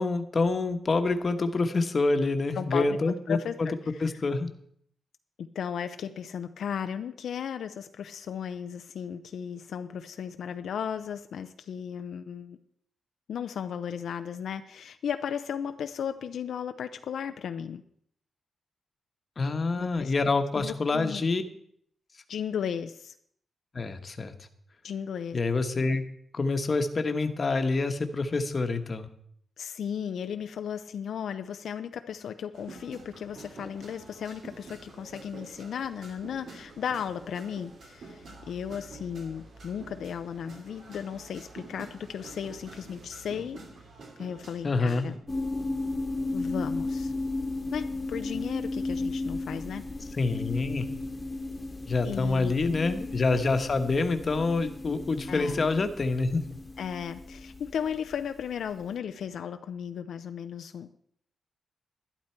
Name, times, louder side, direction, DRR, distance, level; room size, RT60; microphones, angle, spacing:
voice 1, 0.0-3.7 4.0-4.5 19.4-21.4 23.7-24.3 25.3-26.0 26.3-29.1 44.6-45.1 50.1-50.9 51.9-56.4, left 3 dB, 40° left, 8 dB, 1.2 m, -27 dB
voice 2, 2.5-4.1 5.4-12.6 13.3-17.8 19.8-20.3 20.6-21.3 22.3-23.1 24.8-25.4 29.6-43.6 44.2-45.1 46.3-47.1 47.7-49.9 52.0-52.9 55.3-55.6 56.8-61.0, left 8 dB, 80° left, 9 dB, 0.5 m, -35 dB
sound 1, 32.5-45.2, right 3 dB, 65° right, 2.9 m, -48 dB
sound 2, 45.3-58.7, left 2 dB, 20° left, 1.4 m, -35 dB
12.0 x 11.5 x 4.5 m, 0.67 s
wide cardioid pair, 115°, 0 cm